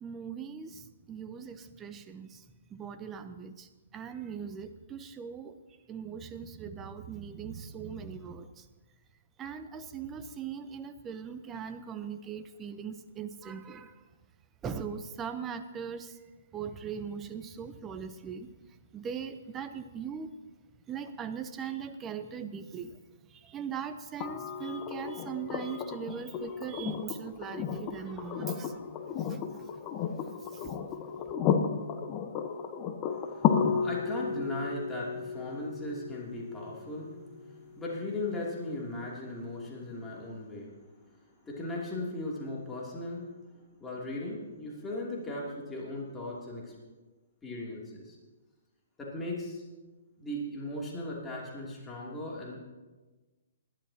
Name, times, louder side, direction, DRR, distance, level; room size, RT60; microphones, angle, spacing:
voice 1, 0.0-2.4 2.7-5.6 5.9-8.7 9.4-14.0 14.6-16.2 16.5-18.5 18.9-20.3 20.9-23.0 23.3-28.8 29.2-29.7 30.5-30.7, right 7 dB, 20° right, 10 dB, 0.8 m, -40 dB
sound 1, 24.2-38.1 39.9-40.0, left 7 dB, 30° left, 1.0 m, -33 dB
voice 2, 33.2-40.7 41.4-43.3 43.8-46.7 47.4-48.1 49.0-49.6 50.2-52.6, left 2 dB, 10° left, -4 dB, 2.9 m, -38 dB
20.0 x 12.0 x 2.9 m, 1.2 s
figure-of-eight pair, 130°, 0 cm